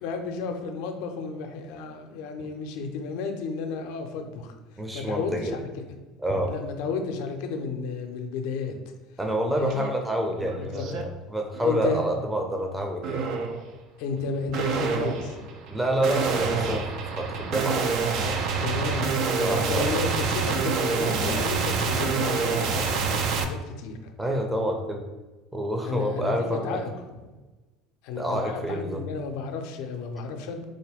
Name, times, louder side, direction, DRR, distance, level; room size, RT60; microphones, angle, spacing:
voice 1, 0.0-4.5 4.9-5.6 6.4-8.7 9.5-9.9 10.6-10.9 11.6-12.0 14.0-15.5 18.6-19.1 19.4-24.1 25.8-26.3 26.6-26.9 28.0-30.6, left 4 dB, 70° left, 4 dB, 0.5 m, -32 dB
voice 2, 4.8-5.6 6.2-6.5 9.2-13.3 15.7-16.8 17.2-17.9 19.4-19.9 24.2-25.0 25.5-26.8 28.2-29.0, right 1 dB, 10° right, 1 dB, 0.6 m, -28 dB
sound 1, 9.7-9.9 10.3-11.0 11.5-12.0 13.0-13.6 14.5-23.4, right 5 dB, 60° right, 0.4 m, -27 dB
3.7 x 2.2 x 3.4 m, 1.2 s
hypercardioid pair, 75°, 0 cm